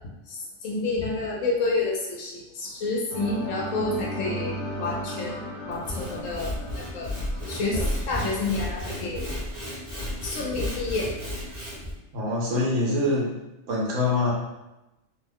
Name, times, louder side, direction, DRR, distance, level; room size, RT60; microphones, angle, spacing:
voice 1, 0.3-5.3 5.6-7.1 7.5-9.3 10.2-11.1, left 3 dB, 85° left, -2 dB, 1.1 m, -29 dB
sound 1, 3.1-9.0, left 1 dB, 45° left, 0.8 m, -35 dB
Sawing / Wood, 5.7-11.9, left 1 dB, 25° right, 0.9 m, -32 dB
voice 2, 12.1-13.3 13.7-14.3, left 2 dB, 80° right, -4 dB, 1.2 m, -24 dB
3.0 x 2.1 x 3.5 m, 0.97 s
omnidirectional pair, 1.3 m